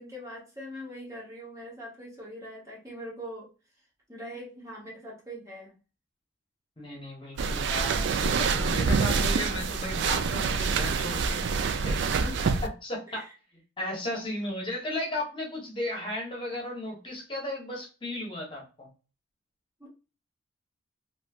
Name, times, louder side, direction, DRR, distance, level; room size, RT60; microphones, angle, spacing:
voice 1, 0.0-3.5 4.1-5.7 12.2-12.6 13.1-13.3 19.8-19.9, equal, 15° right, -4 dB, 0.9 m, -42 dB
voice 2, 6.8-11.4 11.8-12.0 12.6-13.2 13.8-18.9, left 1 dB, 25° left, -2 dB, 1.0 m, -35 dB
sound 1, 7.4-12.7, right 5 dB, 60° right, 0.3 m, -26 dB
3.0 x 2.7 x 2.3 m, 0.34 s
head